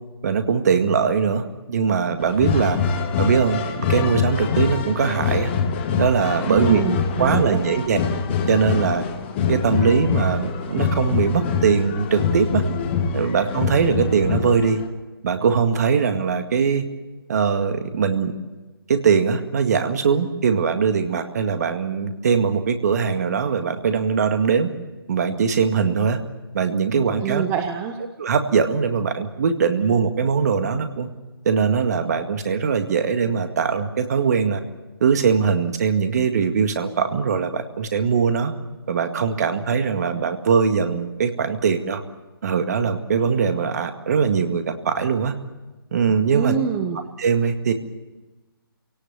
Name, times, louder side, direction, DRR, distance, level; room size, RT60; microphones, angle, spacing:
voice 1, 0.2-2.8 3.2-5.5 6.0-6.8 7.2-8.0 8.5-9.0 9.5-12.6 13.1-14.8 15.2-16.8 17.3-18.3 18.9-24.7 25.1-26.2 26.5-27.4 28.2-31.1 31.5-34.6 35.0-38.5 38.9-42.0 42.4-45.3 45.9-46.5 47.2-47.7, right 6 dB, 45° right, 8 dB, 2.0 m, -21 dB
sound 1, 2.2-14.9, left 5 dB, 30° left, 1.8 m, -24 dB
voice 2, 6.5-7.6 27.2-28.0 46.3-47.0, right 8 dB, 15° right, 6 dB, 1.2 m, -25 dB
28.0 x 18.0 x 7.3 m, 1.2 s
figure-of-eight pair, 140°, 13 cm